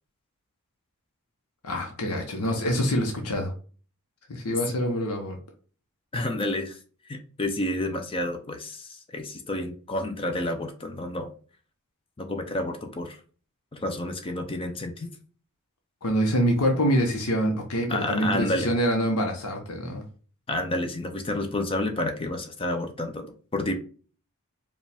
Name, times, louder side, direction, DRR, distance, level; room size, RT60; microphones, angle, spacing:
voice 1, 1.6-3.5 4.3-5.4 16.0-20.0, equal, 80° left, 2 dB, 0.8 m, -25 dB
voice 2, 6.1-6.8 7.1-11.3 12.2-13.2 13.7-15.1 17.9-18.7 20.5-23.7, left 1 dB, 25° left, 5 dB, 0.5 m, -30 dB
4.8 x 2.3 x 3.4 m, 0.39 s
head